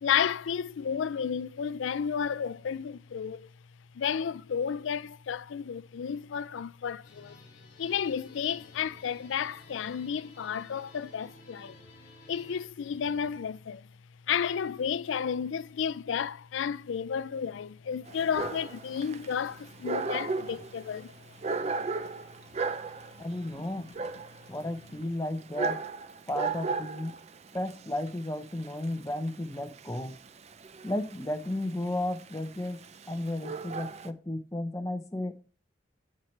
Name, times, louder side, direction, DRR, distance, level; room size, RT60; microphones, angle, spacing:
voice 1, 0.0-3.5 3.9-7.4 7.8-11.8 12.3-13.9 14.3-21.4 23.5-23.8, left 7 dB, 75° left, 0.4 m, -32 dB
sound 1, 7.0-12.7, left 2 dB, 45° left, 2.0 m, -54 dB
Dog, 18.1-34.1, right 4 dB, 35° right, 0.4 m, -36 dB
voice 2, 23.2-23.9 24.5-25.8 26.3-27.1 27.5-30.2 30.8-32.8 33.1-35.3, left 1 dB, 15° left, 0.7 m, -33 dB
7.9 x 7.4 x 3.2 m
head